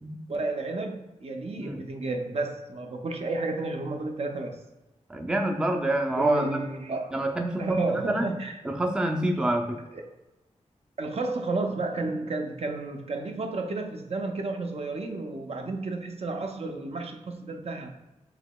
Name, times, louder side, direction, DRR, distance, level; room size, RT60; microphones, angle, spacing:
voice 1, 0.3-4.6 6.2-7.1 7.6-8.6 9.9-10.0 11.0-17.9, right 2 dB, 55° right, 4 dB, 0.5 m, -32 dB
voice 2, 5.1-6.7 7.1-8.4 8.6-9.8, right 1 dB, 5° right, 3 dB, 0.4 m, -27 dB
4.8 x 2.9 x 2.3 m, 1.0 s
wide cardioid pair, 80°, 13 cm